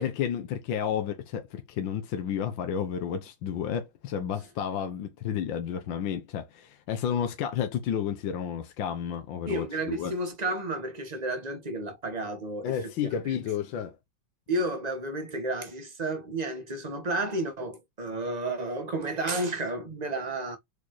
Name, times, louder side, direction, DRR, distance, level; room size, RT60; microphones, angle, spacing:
voice 1, 0.0-10.1 12.6-14.0, left 8 dB, 70° left, 1.5 m, -31 dB
voice 2, 9.5-12.8 13.3-13.4 14.5-20.6, right 2 dB, 20° right, 1.4 m, -32 dB
7.3 x 4.3 x 3.2 m
omnidirectional pair, 2.2 m